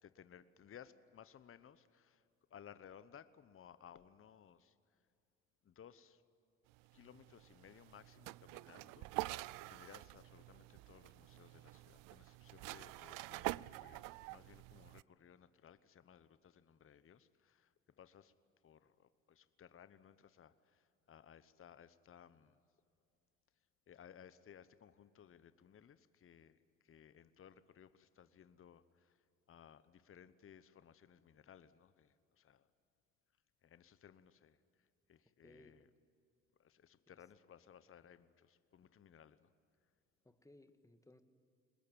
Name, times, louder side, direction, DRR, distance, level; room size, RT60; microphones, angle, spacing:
voice 1, 0.0-2.2 2.5-4.8 5.6-6.2 6.9-9.1 9.7-18.3 18.6-22.6 23.9-29.2 29.5-32.7 33.6-35.9 36.6-39.5, left 8 dB, 35° left, 14 dB, 1.1 m, -61 dB
sound 1, 6.7-15.0, right 21 dB, 65° right, 0.5 m, -47 dB
voice 2, 35.4-35.8 37.1-37.2 40.2-41.2, left 1 dB, 10° left, 9 dB, 1.8 m, -62 dB
23.0 x 20.5 x 9.2 m, 2.5 s
hypercardioid pair, 70°, 35 cm